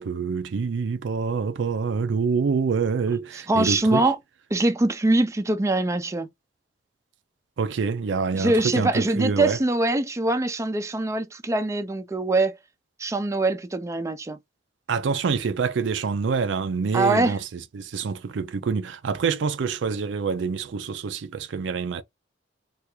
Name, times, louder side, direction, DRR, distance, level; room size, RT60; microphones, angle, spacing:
voice 1, 0.0-4.1 7.6-9.6 14.9-22.0, right 5 dB, 85° right, 0.4 m, -26 dB
voice 2, 3.5-4.2 4.5-6.3 8.3-12.6 13.0-14.4 16.9-17.4, right 2 dB, 15° right, 0.4 m, -23 dB
3.4 x 2.4 x 2.9 m
head